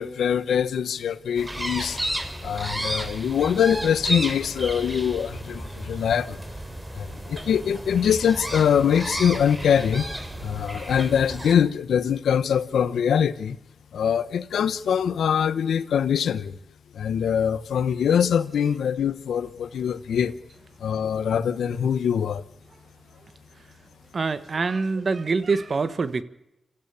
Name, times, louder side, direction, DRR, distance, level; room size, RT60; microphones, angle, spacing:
voice 1, 0.0-2.0 2.4-6.4 6.9-10.1 10.4-13.6 13.9-16.6 16.9-20.4 20.8-22.4, left 8 dB, 90° left, 0.9 m, -23 dB
sound 1, 1.4-11.5, right 1 dB, 20° right, 3.3 m, -33 dB
voice 2, 24.1-26.2, right 4 dB, 60° right, 1.3 m, -25 dB
27.0 x 15.0 x 7.0 m
cardioid pair, 45°, 0 cm